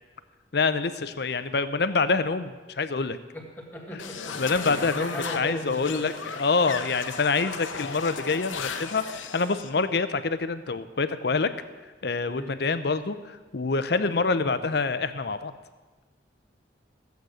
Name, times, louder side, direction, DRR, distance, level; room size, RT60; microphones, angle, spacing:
voice 1, 0.5-3.2 3.9-4.0 4.3-11.5 12.0-15.5, left 4 dB, 55° left, 12 dB, 0.6 m, -26 dB
voice 2, 3.3-6.3 12.3-12.5 13.9-14.1, equal, 10° left, 0 dB, 1.7 m, -38 dB
sound 1, 4.0-9.7, left 5 dB, 90° left, 0.9 m, -36 dB
14.5 x 8.1 x 6.3 m, 1.3 s
head